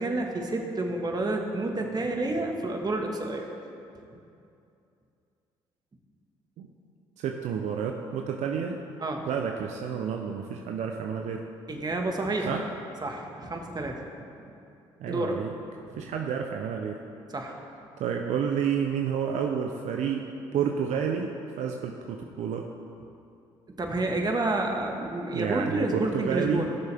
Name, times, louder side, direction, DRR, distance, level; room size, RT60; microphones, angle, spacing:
voice 1, 0.0-3.5 9.0-9.3 11.7-12.6 13.0-14.0 14.4-14.5 15.1-15.4 17.3-17.6 23.7-26.8, right 2 dB, 35° right, 2 dB, 1.6 m, -29 dB
voice 2, 7.2-8.8 9.3-11.4 12.5-12.6 15.0-15.5 16.0-17.0 18.0-20.2 20.5-21.3 21.6-22.6 25.3-26.6, right 7 dB, 70° right, 3 dB, 0.7 m, -30 dB
16.0 x 6.9 x 3.5 m, 2.6 s
supercardioid pair, 60°, 12 cm